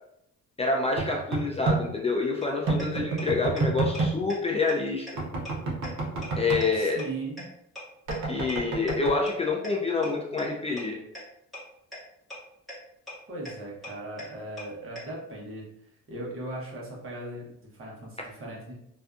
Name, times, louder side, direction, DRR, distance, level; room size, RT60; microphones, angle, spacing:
voice 1, 0.6-5.1 6.4-7.0 8.3-11.0, left 3 dB, 20° left, -1 dB, 0.3 m, -27 dB
sound 1, 1.0-1.8 2.7-4.1 5.2-6.6 8.1-9.1, right 3 dB, 70° right, 0.8 m, -28 dB
sound 2, 2.4-2.5 2.8-2.9 3.2-3.3 3.6-3.7 3.9-4.0 4.3-4.4 4.7-4.8 5.1-5.2 5.4-5.5 5.8-5.9 6.2-6.3 6.6-6.7 7.0-7.1 7.4-7.5 7.8-7.9 8.1-8.2 8.5-8.6 8.9-9.0 9.3-9.4 9.6-9.7 10.0-10.1 10.4-10.5 10.8-10.9 11.1-11.2 11.5-11.6 11.9-12.0 12.3-12.4 12.7-12.8 13.1-13.2 13.4-13.5 13.8-13.9 14.2-14.3 14.6-14.7 15.0-15.1, left 1 dB, ahead, 1.2 m, -39 dB
voice 2, 6.7-7.4 13.3-15.7 16.1-18.7, right 2 dB, 45° right, -3 dB, 1.0 m, -38 dB
2.6 x 2.3 x 2.3 m, 0.79 s
cardioid pair, 90°, 30 cm